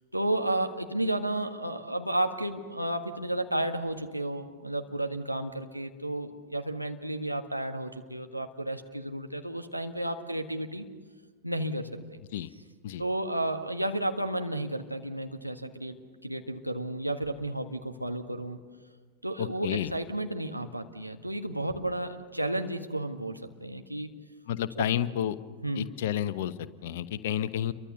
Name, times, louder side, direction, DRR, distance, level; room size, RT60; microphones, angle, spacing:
voice 1, 0.1-10.8 11.4-12.2 13.0-16.0 16.2-18.6 19.2-24.1 24.8-24.9 25.6-25.9, right 1 dB, 90° right, 5 dB, 1.6 m, -32 dB
voice 2, 19.4-19.9 24.5-25.4 25.7-27.7, left 11 dB, 55° left, 14 dB, 1.0 m, -30 dB
29.5 x 23.5 x 6.8 m, 1.5 s
figure-of-eight pair, 90°, 0 cm